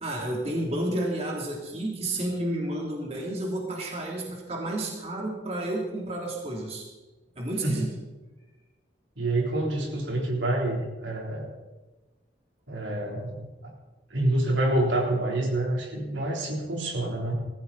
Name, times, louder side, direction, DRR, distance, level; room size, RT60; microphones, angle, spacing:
voice 1, 0.0-6.9 7.3-7.9, right 1 dB, 35° right, -1 dB, 3.2 m, -31 dB
voice 2, 9.2-11.5 12.7-13.7 14.1-17.3, right 1 dB, 85° right, -1 dB, 3.8 m, -27 dB
20.5 x 14.5 x 4.2 m, 1.1 s
head